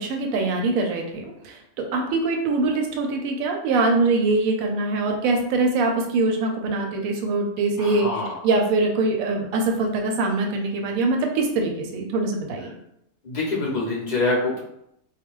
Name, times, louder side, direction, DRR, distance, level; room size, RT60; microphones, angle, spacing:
voice 1, 0.0-8.1 8.4-12.8, right 3 dB, 75° right, 3 dB, 1.0 m, -23 dB
voice 2, 7.8-8.3 13.2-14.6, left 2 dB, 50° left, -4 dB, 0.5 m, -25 dB
2.4 x 2.2 x 3.0 m, 0.77 s
omnidirectional pair, 1.5 m